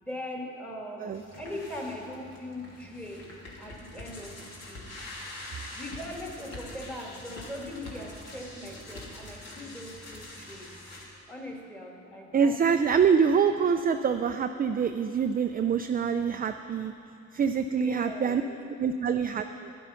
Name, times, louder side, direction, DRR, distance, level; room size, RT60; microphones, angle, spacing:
voice 1, 0.0-1.1 1.4-3.3 3.6-4.8 5.7-10.7 11.3-12.5 17.7-18.5, left 1 dB, 5° left, 0 dB, 2.1 m, -40 dB
sound 1, 1.1-11.0, left 1 dB, 60° left, 2.8 m, -44 dB
voice 2, 12.3-16.9 17.3-18.4 18.8-19.7, right 6 dB, 30° right, 7 dB, 0.4 m, -25 dB
11.5 x 10.0 x 5.7 m, 2.6 s
cardioid pair, 90°, 30 cm